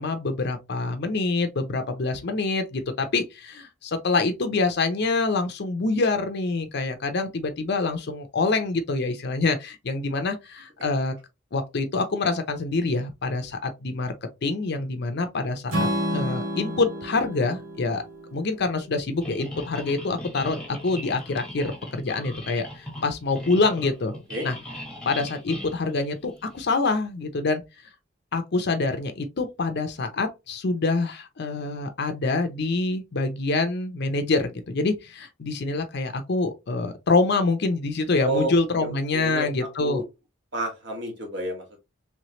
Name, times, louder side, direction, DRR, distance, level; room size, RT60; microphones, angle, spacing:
voice 1, 0.0-11.1 11.5-14.1 14.4-18.0 18.3-24.1 24.4-24.5 25.0-27.6 28.3-40.0, left 3 dB, 55° left, 0.6 m, -26 dB
Strum, 15.7-19.9, equal, 90° right, 1.5 m, -31 dB
sound 1, 19.2-26.6, equal, 5° left, 0.9 m, -39 dB
voice 2, 38.8-39.5 39.8-40.0 40.5-41.8, right 1 dB, 60° right, 1.4 m, -30 dB
3.2 x 3.1 x 2.8 m
head